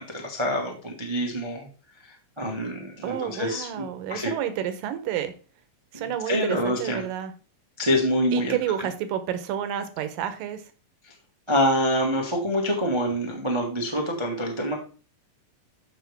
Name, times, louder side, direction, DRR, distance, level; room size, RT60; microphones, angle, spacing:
voice 1, 0.0-1.7 2.0-4.3 5.9-7.0 7.8-8.6 11.0-11.1 11.5-14.7, equal, 50° right, 0 dB, 0.3 m, -26 dB
voice 2, 3.0-5.3 5.9-7.3 8.3-10.6, right 10 dB, 75° right, 10 dB, 2.6 m, -30 dB
13.5 x 5.4 x 3.5 m, 0.37 s
omnidirectional pair, 4.0 m